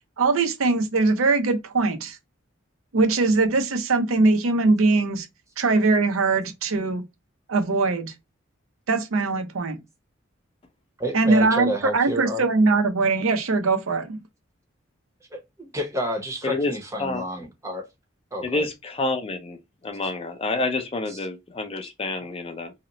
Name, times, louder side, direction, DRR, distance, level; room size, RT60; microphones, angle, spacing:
voice 1, 0.2-2.2 2.9-5.3 5.6-7.0 7.5-8.1 8.9-9.8 11.1-14.2, right 3 dB, 85° right, 0.6 m, -21 dB
voice 2, 11.0-12.5 15.3-17.9 18.3-18.6 21.1-21.2, equal, 15° right, 0.7 m, -29 dB
voice 3, 18.4-19.6 19.8-22.7, left 2 dB, 30° left, 0.4 m, -28 dB
2.8 x 2.0 x 3.8 m
head